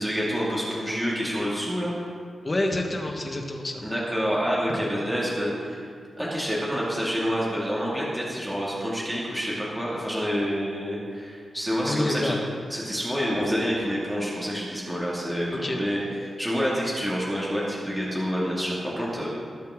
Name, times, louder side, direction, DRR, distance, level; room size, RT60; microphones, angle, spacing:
voice 1, 0.0-2.0 3.8-5.9 6.2-12.3 12.7-16.0 16.4-19.4, equal, ahead, -6 dB, 2.3 m, -28 dB
voice 2, 2.4-3.8 4.7-4.8 11.9-12.4 15.5-15.8, left 1 dB, 25° left, 2 dB, 1.4 m, -28 dB
19.0 x 8.5 x 3.7 m, 2.2 s
wide cardioid pair, 140°, 0 cm